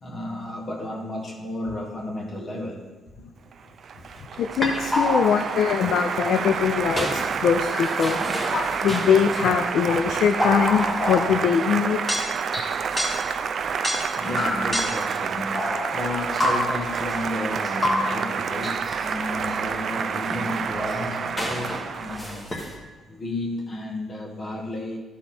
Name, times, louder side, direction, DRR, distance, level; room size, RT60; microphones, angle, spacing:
voice 1, 0.0-2.9 14.1-22.5 23.1-25.0, left 2 dB, 35° left, 1 dB, 1.7 m, -33 dB
Applause, 3.5-22.4, right 6 dB, 55° right, 0.4 m, -29 dB
voice 2, 4.4-8.2 8.5-12.0, left 7 dB, 70° left, 6 dB, 0.4 m, -22 dB
sound 1, 4.5-5.7 6.9-9.4 10.0-11.7 12.1-13.4 13.8-15.1 15.5-17.2 17.6-19.1 19.5-19.6 20.1-22.8, left 1 dB, 20° left, 1.7 m, -29 dB
12.0 x 4.2 x 4.2 m, 1.2 s
cardioid pair, 90°, 0 cm